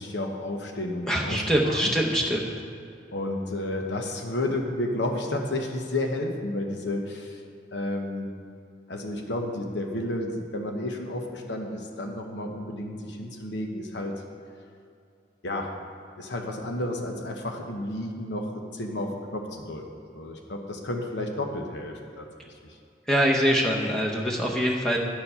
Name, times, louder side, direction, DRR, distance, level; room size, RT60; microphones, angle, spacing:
voice 1, 0.0-1.9 3.1-7.4 7.7-8.3 8.9-14.2 15.4-15.7 16.2-19.9 20.1-22.8, left 1 dB, 85° left, 3 dB, 1.0 m, -31 dB
voice 2, 1.1-2.5 23.1-25.0, equal, 5° left, -2 dB, 0.8 m, -24 dB
9.6 x 7.0 x 5.6 m, 2.5 s
head